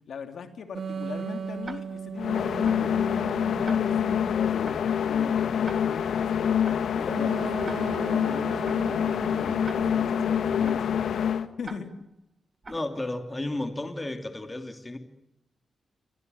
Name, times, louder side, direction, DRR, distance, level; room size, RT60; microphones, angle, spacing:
voice 1, 0.1-6.4 6.9-11.1 11.6-11.9, left 5 dB, 65° left, 7 dB, 2.9 m, -39 dB
sound 1, 0.7-4.8 7.1-10.8, right 7 dB, 60° right, 1.0 m, -38 dB
Tick-tock, 1.6-2.1 2.6-3.0 3.6-4.1 4.6-5.0 5.6-6.1 6.6-7.0 7.6-8.1 8.6-9.0 9.6-10.1 10.6-11.0 11.6-12.1 12.6-13.0, right 3 dB, 30° right, 2.2 m, -44 dB
sound 2, 2.2-11.5, left 8 dB, 85° left, 1.7 m, -26 dB
voice 2, 12.7-15.0, left 2 dB, 15° left, 6 dB, 2.8 m, -33 dB
29.0 x 24.0 x 8.1 m, 0.78 s
wide cardioid pair, 135°, 0 cm